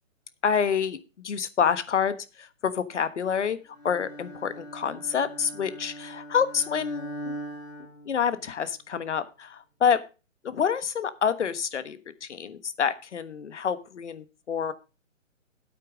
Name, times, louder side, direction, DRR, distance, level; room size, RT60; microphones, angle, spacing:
voice 1, 0.4-1.0 1.2-3.6 3.8-7.4 8.1-10.0 10.4-14.7, left 7 dB, 65° left, 13 dB, 1.4 m, -27 dB
Bowed string instrument, 3.7-8.7, right 1 dB, 80° left, 5.6 m, -41 dB
9.1 x 8.7 x 4.9 m, 0.31 s
hypercardioid pair, 160°, 39 cm